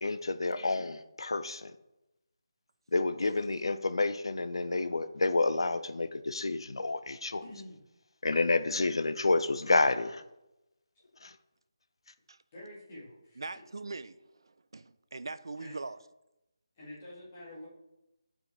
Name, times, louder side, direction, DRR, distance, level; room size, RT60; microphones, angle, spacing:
voice 1, 0.0-1.7 2.9-7.4 8.2-10.2 11.2-11.3, left 3 dB, 80° left, 0.6 m, -29 dB
voice 2, 7.4-7.8 12.5-13.4 15.6-15.7 16.8-17.7, left 1 dB, 15° left, 1.9 m, -47 dB
voice 3, 13.4-16.0, right 3 dB, 65° right, 0.4 m, -42 dB
12.0 x 4.9 x 3.3 m
hypercardioid pair, 180°, 3 cm